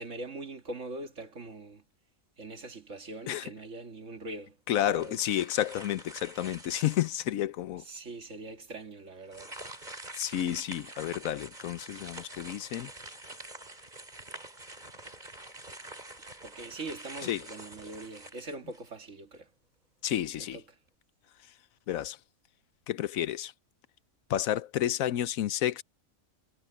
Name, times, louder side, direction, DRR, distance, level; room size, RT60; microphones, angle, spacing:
voice 1, 0.0-1.8 2.4-4.6 4.9-5.2 7.8-9.5 16.4-19.5 20.4-20.8, right 2 dB, 60° right, 2.2 m, -42 dB
voice 2, 4.7-7.8 10.2-12.9 17.2-17.4 20.0-20.6 21.9-22.2 22.9-23.5 24.3-25.8, left 12 dB, 80° left, 1.1 m, -30 dB
sound 1, 4.8-7.3 7.9-8.0 9.2-19.0, right 1 dB, 30° right, 3.8 m, -46 dB
omnidirectional pair, 1.4 m